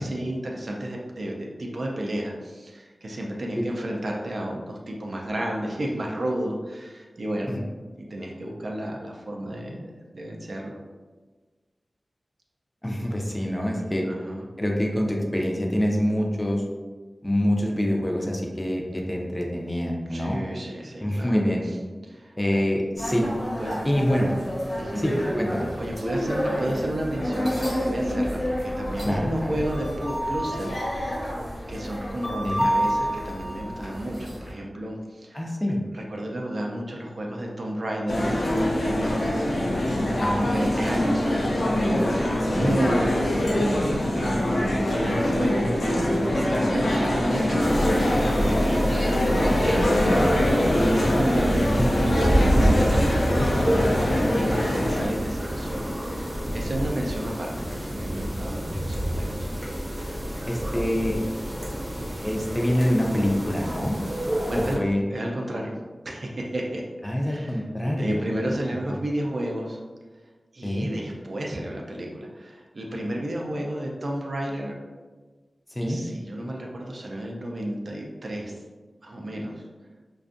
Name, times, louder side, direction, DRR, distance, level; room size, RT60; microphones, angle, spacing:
voice 1, 0.0-7.5 8.0-10.8 14.1-14.4 20.1-21.4 22.0-22.6 23.6-23.8 24.8-25.1 25.7-31.2 31.7-35.4 35.9-38.3 38.6-39.7 40.3-59.5 64.5-64.8 65.1-65.8 66.0-66.8 67.2-67.6 68.0-69.8 70.5-74.7 75.9-78.5 79.0-79.5, right 1 dB, 65° right, -1 dB, 0.4 m, -32 dB
voice 2, 12.8-14.0 14.6-16.6 17.2-20.4 21.0-21.6 22.4-23.2 23.8-24.3 24.9-25.7 29.0-29.6 32.4-32.7 35.3-35.8 40.2-40.5 42.5-42.8 51.8-52.1 60.5-61.2 62.2-64.0 64.8-65.0 67.0-68.2 68.9-69.0 70.6-70.9 75.7-76.0, equal, 15° left, 0 dB, 0.4 m, -25 dB
sound 1, 23.0-34.5, equal, 50° left, 0.8 m, -29 dB
sound 2, 38.1-55.1, left 1 dB, 85° left, 0.4 m, -23 dB
sound 3, 47.6-64.8, equal, 35° right, 0.8 m, -27 dB
2.5 x 2.2 x 2.5 m, 1.4 s
wide cardioid pair, 75°, 0 cm